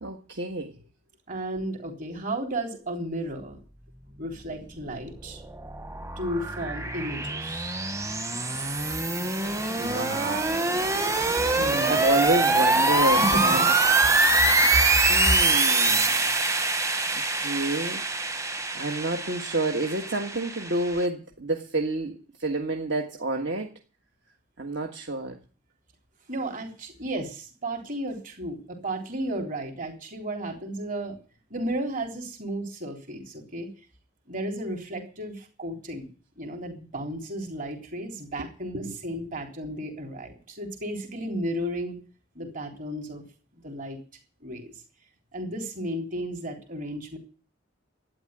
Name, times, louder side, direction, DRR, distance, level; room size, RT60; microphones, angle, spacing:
voice 1, 0.0-0.8 9.8-10.9 11.9-13.7 15.1-16.1 16.8-16.9 17.3-18.0 18.5-23.7 24.6-25.4 38.4-38.5 38.7-39.0, right 2 dB, 60° right, 2 dB, 1.6 m, -29 dB
voice 2, 1.3-3.6 4.2-5.4 6.2-7.8 11.6-12.0 13.2-13.7 14.6-14.8 26.3-31.2 31.5-33.7 34.3-36.1 36.4-42.0 42.4-43.2 43.6-44.0 44.4-44.8 45.3-47.2, right 1 dB, 40° right, 3 dB, 3.5 m, -33 dB
sound 1, 5.0-21.1, right 3 dB, 15° right, 1.0 m, -24 dB
12.5 x 9.7 x 9.0 m, 0.38 s
head